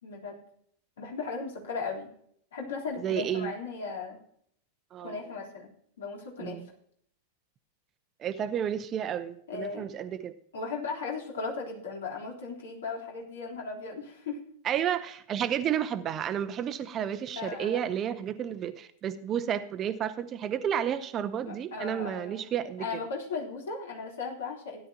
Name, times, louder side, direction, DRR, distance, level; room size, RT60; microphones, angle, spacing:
voice 1, 0.0-0.4 1.0-2.1 2.5-4.2 5.0-6.6 9.5-9.9 10.5-14.4 17.4-17.9 21.4-22.5 22.8-24.9, left 4 dB, 60° left, 3.5 m, -37 dB
voice 2, 3.0-3.5 4.9-5.2 6.4-6.7 8.2-10.3 14.6-22.9, right 9 dB, 30° right, 0.7 m, -31 dB
16.5 x 11.0 x 2.9 m
figure-of-eight pair, 90°, 0 cm